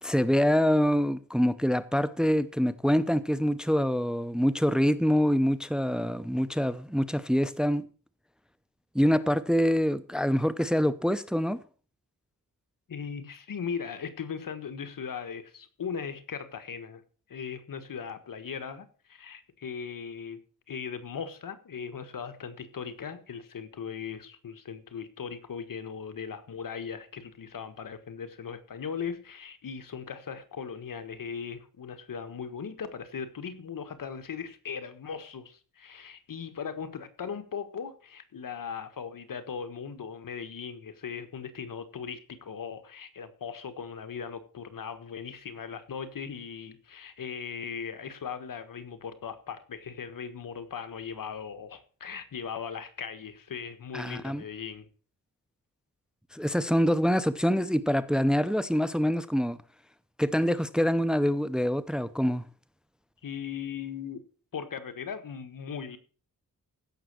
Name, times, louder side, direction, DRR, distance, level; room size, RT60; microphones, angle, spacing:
voice 1, 0.0-7.8 8.9-11.6 53.9-54.4 56.3-59.6 60.2-62.4, equal, ahead, 0.7 m, -25 dB
voice 2, 12.9-17.0 17.3-20.4 20.7-54.9 63.2-64.2 64.5-66.0, left 6 dB, 70° left, 1.6 m, -38 dB
15.5 x 6.4 x 6.2 m
cardioid pair, 75°, 35 cm